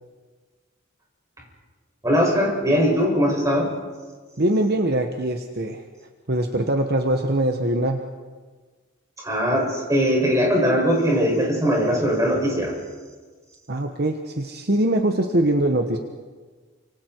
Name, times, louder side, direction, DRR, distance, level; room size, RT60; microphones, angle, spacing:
voice 1, 2.0-3.7 9.2-12.7, equal, 15° right, -2 dB, 6.8 m, -20 dB
voice 2, 4.4-5.8 6.3-8.0 13.7-16.0, right 1 dB, 50° right, 5 dB, 1.3 m, -22 dB
29.0 x 26.5 x 4.6 m, 1.4 s
head